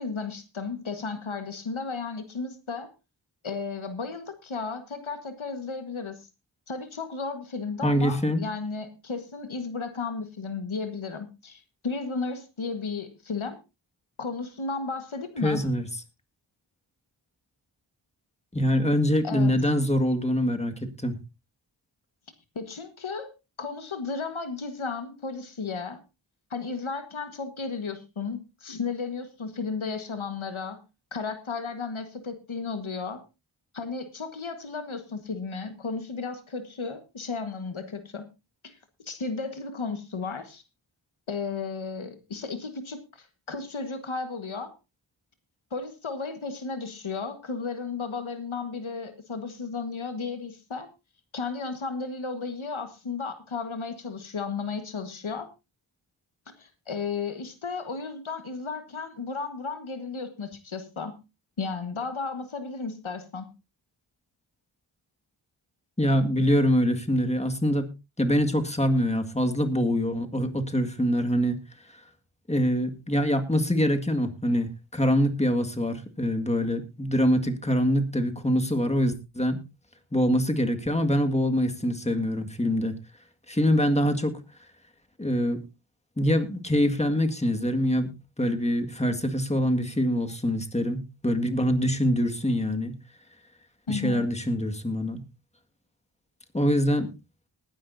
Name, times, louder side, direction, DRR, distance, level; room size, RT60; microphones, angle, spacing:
voice 1, 0.0-2.9 3.4-6.3 6.7-13.6 14.2-15.7 19.2-19.5 22.5-23.3 23.6-26.0 26.5-30.8 31.1-33.2 33.7-38.2 38.6-38.8 39.0-40.6 41.3-44.7 45.7-50.9 51.3-55.5 56.6-61.1 61.6-63.5 93.9-94.3, left 4 dB, 80° left, 8 dB, 1.6 m, -34 dB
voice 2, 7.8-8.4 15.4-15.9 18.5-21.2 66.0-67.9 68.2-71.6 72.5-79.6 80.1-83.0 83.5-84.4 85.2-85.6 86.2-88.1 88.4-93.0 93.9-95.2 96.5-97.1, equal, 15° left, 6 dB, 1.9 m, -24 dB
20.0 x 10.5 x 2.7 m, 0.26 s
wide cardioid pair, 40°, 47 cm